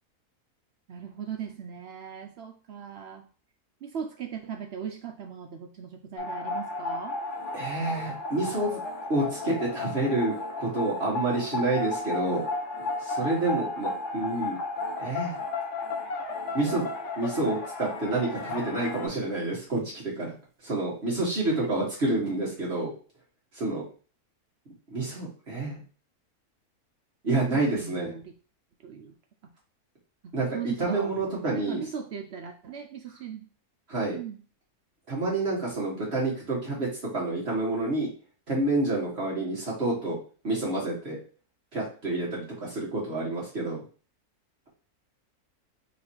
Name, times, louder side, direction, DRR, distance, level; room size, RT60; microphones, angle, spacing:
voice 1, 0.9-3.3 3.8-7.2 21.5-21.7 27.5-28.3 28.8-29.1 30.2-31.1 31.5-33.5 34.1-34.4, right 7 dB, 70° right, 5 dB, 0.6 m, -39 dB
sound 1, 6.2-19.1, left 3 dB, 55° left, 1.1 m, -34 dB
sound 2, 7.3-19.1, equal, 15° right, 0.8 m, -48 dB
voice 2, 7.5-8.8 9.1-12.4 13.0-14.6 15.0-15.4 16.5-16.9 17.2-20.3 20.6-22.9 23.5-23.8 24.9-25.8 27.2-28.1 30.3-31.8 33.9-34.2 35.1-36.9 37.1-38.1 38.5-40.2 40.4-41.2 41.7-43.8, right 2 dB, 45° right, -5 dB, 1.6 m, -28 dB
4.0 x 2.6 x 4.4 m, 0.38 s
omnidirectional pair, 1.6 m